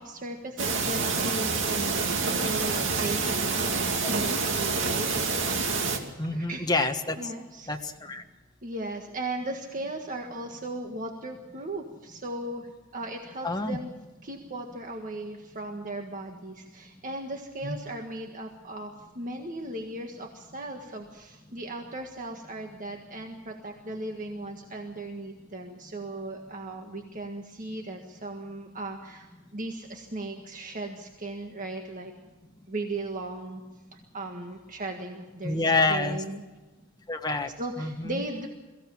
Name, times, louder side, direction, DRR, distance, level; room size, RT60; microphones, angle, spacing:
voice 1, 0.0-5.1 6.2-6.6 7.2-7.9 8.6-13.9 14.2-32.1 32.7-33.6 33.9-36.4 37.4-38.5, right 2 dB, 40° right, 3 dB, 1.7 m, -37 dB
sound 1, 0.6-6.0, right 4 dB, 65° right, 2.4 m, -27 dB
voice 2, 6.2-7.3 7.7-8.2 13.4-13.8 17.6-17.8 35.4-36.2 37.1-37.5 37.8-38.1, left 3 dB, 20° left, 4 dB, 1.3 m, -27 dB
23.0 x 16.0 x 7.2 m, 1.2 s
head